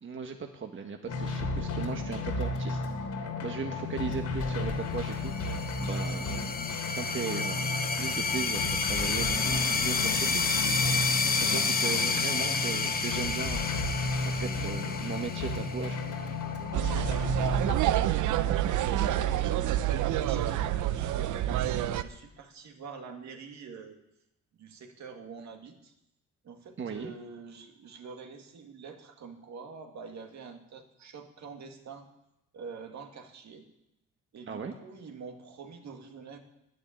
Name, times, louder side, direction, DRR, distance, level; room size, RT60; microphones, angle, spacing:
voice 1, 0.0-3.1 3.4-5.3 5.8-6.5 6.8-11.0 11.5-16.3 26.8-27.1 34.5-34.7, right 5 dB, 40° right, 4 dB, 1.4 m, -38 dB
sound 1, 1.1-17.7, left 3 dB, 80° left, 3.0 m, -33 dB
sound 2, 5.1-16.3, left 4 dB, 30° left, 1.3 m, -30 dB
voice 2, 11.9-12.6 18.3-24.0 24.5-25.9 26.4-32.1 32.5-33.6 34.3-36.4, right 5 dB, 65° right, 4 dB, 2.2 m, -46 dB
sound 3, 16.7-22.0, right 12 dB, 80° right, 0.8 m, -27 dB
10.5 x 10.0 x 8.9 m, 0.87 s
cardioid pair, 90°, 30 cm